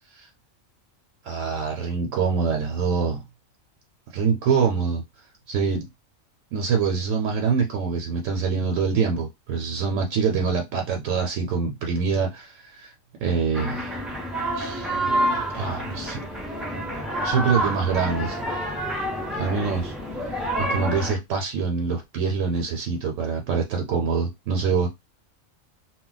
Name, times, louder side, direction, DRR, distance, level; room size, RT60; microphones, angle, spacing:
voice 1, 1.2-3.2 4.1-5.0 5.5-5.9 6.5-12.9 13.2-14.0 14.5-15.1 15.5-16.3 17.2-18.4 19.4-19.9 20.6-24.9, right 5 dB, 75° right, 0.9 m, -25 dB
sound 1, 13.5-21.1, right 1 dB, ahead, 0.5 m, -28 dB
2.2 x 2.1 x 3.8 m
omnidirectional pair, 1.4 m